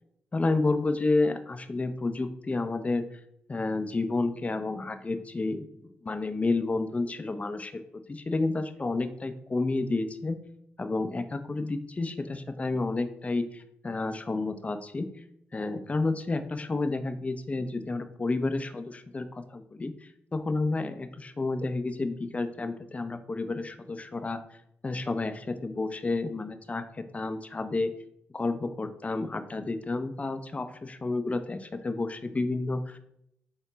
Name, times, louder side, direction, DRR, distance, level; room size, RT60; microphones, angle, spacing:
voice 1, 0.3-3.1 3.5-7.8 8.1-10.4 10.8-15.1 15.5-24.6 24.8-27.9 28.3-33.0, left 3 dB, 30° left, 9 dB, 0.5 m, -30 dB
4.3 x 2.9 x 4.0 m, 0.73 s
cardioid pair, 60°, 5 cm